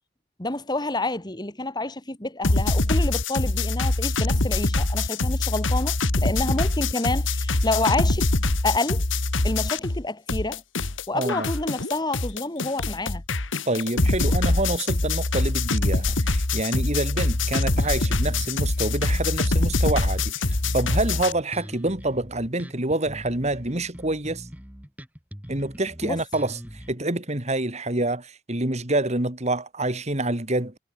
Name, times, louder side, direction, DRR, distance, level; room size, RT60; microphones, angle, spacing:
voice 1, 0.4-6.0 6.2-8.3 8.6-9.0 9.4-10.6 11.1-13.2 26.0-26.2, left 2 dB, 20° left, 2.6 m, -28 dB
sound 1, 2.4-10.0 10.3-21.3, left 2 dB, 75° left, 2.0 m, -24 dB
voice 2, 11.1-11.5 13.7-24.5 25.5-30.8, right 2 dB, 35° right, 2.8 m, -27 dB
Bass guitar, 17.3-26.9, equal, 10° right, 4.5 m, -42 dB
head